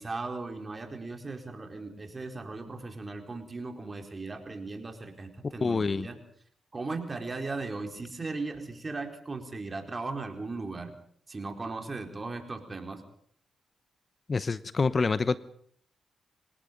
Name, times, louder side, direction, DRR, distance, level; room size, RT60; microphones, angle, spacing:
voice 1, 0.0-6.2 6.7-10.9 11.3-13.0, right 3 dB, 35° right, 5 dB, 4.5 m, -37 dB
voice 2, 5.6-6.1 14.3-15.4, left 4 dB, 40° left, 16 dB, 0.9 m, -26 dB
25.5 x 19.0 x 5.3 m, 0.62 s
supercardioid pair, 55°, 0 cm